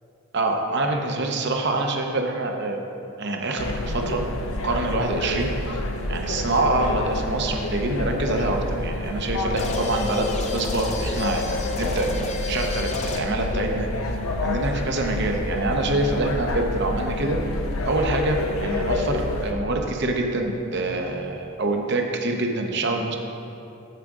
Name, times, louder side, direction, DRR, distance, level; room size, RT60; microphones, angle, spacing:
voice 1, 0.3-2.8 3.2-4.2 4.6-5.8 6.1-13.9 14.4-17.4 17.9-23.2, right 2 dB, 50° right, 3 dB, 0.8 m, -25 dB
sound 1, 3.6-19.5, left 2 dB, 70° left, 0.7 m, -28 dB
sound 2, 9.6-13.5, left 3 dB, 30° left, 0.6 m, -31 dB
13.5 x 5.0 x 3.6 m, 2.8 s
head